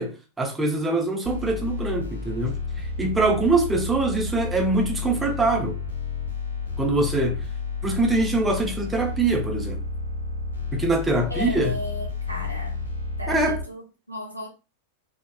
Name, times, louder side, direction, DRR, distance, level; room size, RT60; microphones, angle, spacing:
voice 1, 0.0-2.6 3.0-5.8 6.8-7.4 7.8-9.8 10.7-11.7 13.3-13.6, right 2 dB, 10° right, 0.8 m, -23 dB
sound 1, 1.2-13.6, left 4 dB, 90° left, 1.1 m, -31 dB
voice 2, 11.3-12.8 13.2-14.5, left 1 dB, 90° right, 0.9 m, -35 dB
3.9 x 2.4 x 2.3 m
figure-of-eight pair, 90°, 0 cm